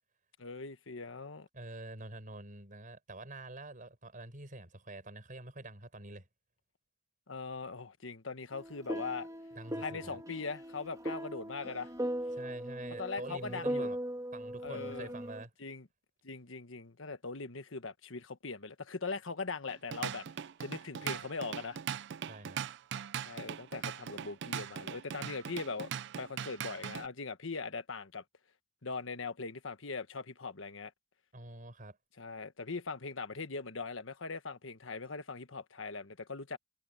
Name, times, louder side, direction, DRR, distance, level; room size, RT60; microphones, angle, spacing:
voice 1, 0.4-1.5 7.3-9.3 9.8-11.9 13.0-13.9 14.6-15.1 15.6-15.9 16.2-20.2 20.6-21.8 23.2-25.9 26.2-28.2 28.8-30.9 32.2-36.6, left 4 dB, 85° left, 1.4 m, -40 dB
voice 2, 1.5-6.3 9.6-10.2 12.3-14.0 14.3-15.5 22.3-22.6 31.3-32.0, right 2 dB, 45° right, 5.3 m, -47 dB
sound 1, 8.5-15.4, right 1 dB, 15° right, 1.5 m, -39 dB
Drum kit / Drum, 19.7-27.1, right 8 dB, 60° right, 0.4 m, -40 dB
head